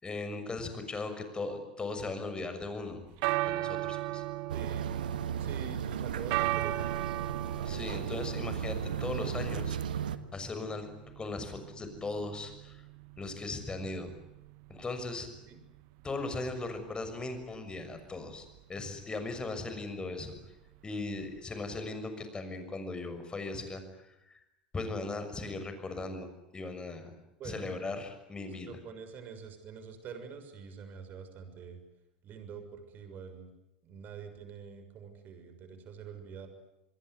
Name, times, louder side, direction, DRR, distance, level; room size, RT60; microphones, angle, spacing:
voice 1, 0.0-3.0 3.4-4.2 7.6-9.8 10.3-10.9 11.2-12.8 13.2-14.1 14.7-15.3 16.0-20.4 20.8-24.4 24.7-27.1 27.4-28.7, left 3 dB, 20° left, 8 dB, 6.4 m, -38 dB
sound 1, 2.8-21.9, right 18 dB, 55° right, 1.4 m, -39 dB
voice 2, 4.5-4.9 5.4-7.1 15.5-15.6 27.4-27.7 28.6-31.8 32.2-33.5 33.8-36.5, right 6 dB, 40° right, 8 dB, 6.6 m, -46 dB
sound 2, 4.5-10.2, right 8 dB, 75° right, 1.5 m, -35 dB
28.0 x 22.0 x 9.7 m, 0.87 s
figure-of-eight pair, 85°, 5 cm